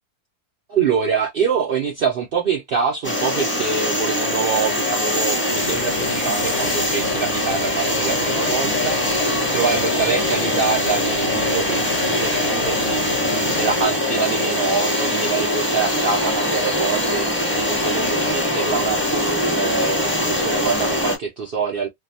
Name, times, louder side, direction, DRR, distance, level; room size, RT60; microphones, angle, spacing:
voice 1, 0.7-21.9, right 6 dB, 80° right, 0.5 m, -25 dB
sound 1, 3.0-21.2, left 1 dB, 10° left, 0.6 m, -22 dB
sound 2, 5.4-13.8, left 7 dB, 80° left, 1.0 m, -34 dB
2.7 x 2.0 x 2.6 m
omnidirectional pair, 1.6 m